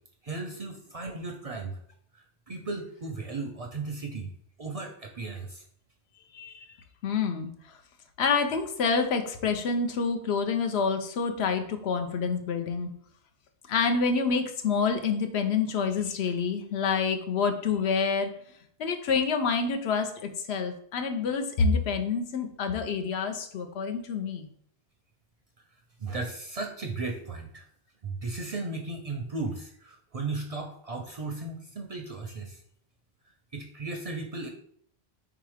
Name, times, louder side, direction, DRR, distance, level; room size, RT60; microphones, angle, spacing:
voice 1, 0.2-1.8 2.1-4.3 4.6-5.6 26.0-27.7 28.0-32.6 33.5-34.5, right 3 dB, 50° right, 3 dB, 0.5 m, -36 dB
voice 2, 6.3-6.7 7.0-7.5 8.2-12.9 13.7-18.3 18.8-24.5, left 5 dB, 85° left, 6 dB, 0.9 m, -27 dB
3.6 x 2.9 x 4.8 m, 0.64 s
omnidirectional pair, 1.1 m